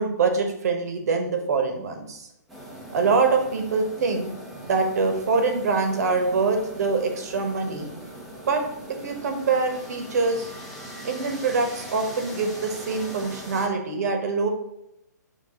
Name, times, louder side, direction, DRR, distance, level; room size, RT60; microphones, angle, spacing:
voice 1, 0.0-2.2 2.9-4.3 4.6-7.9 8.4-10.5 11.0-14.5, right 4 dB, 60° right, 4 dB, 1.3 m, -24 dB
sound 1, 2.5-13.7, right 1 dB, ahead, 1.0 m, -41 dB
7.0 x 3.6 x 3.7 m, 0.85 s
hypercardioid pair, 145°, 10 cm